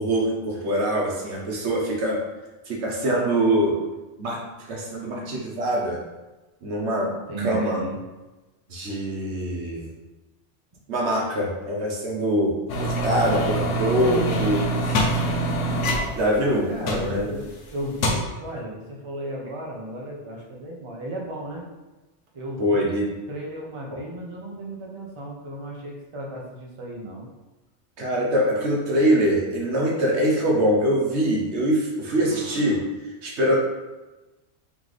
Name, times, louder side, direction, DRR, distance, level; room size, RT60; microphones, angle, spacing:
voice 1, 0.0-2.2 2.7-3.8 4.2-4.4 4.7-6.0 6.6-7.1 7.4-7.8 8.7-9.9 10.9-15.2 16.1-17.3 22.6-23.1 23.9-24.0 28.0-32.8 33.2-33.6, right 1 dB, 70° right, -2 dB, 1.2 m, -24 dB
voice 2, 7.3-8.0 16.4-21.7 22.3-27.3 32.1-32.8, right 1 dB, 30° right, -2 dB, 0.7 m, -35 dB
sound 1, 12.7-17.5 17.8-18.1, right 1 dB, 85° left, 1.1 m, -25 dB
3.5 x 3.2 x 3.9 m, 1.1 s
omnidirectional pair, 1.2 m